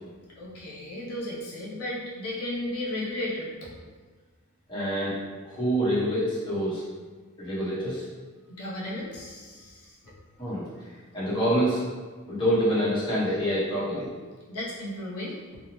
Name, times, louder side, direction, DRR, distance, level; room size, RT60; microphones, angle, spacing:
voice 1, 0.3-3.7 8.5-10.2 14.5-15.6, left 1 dB, 80° left, -6 dB, 0.6 m, -35 dB
voice 2, 4.7-5.1 5.4-6.8 7.4-8.0 10.4-10.7 11.1-11.8 12.3-14.1, equal, 20° left, -10 dB, 0.8 m, -26 dB
2.6 x 2.0 x 2.9 m, 1.4 s
head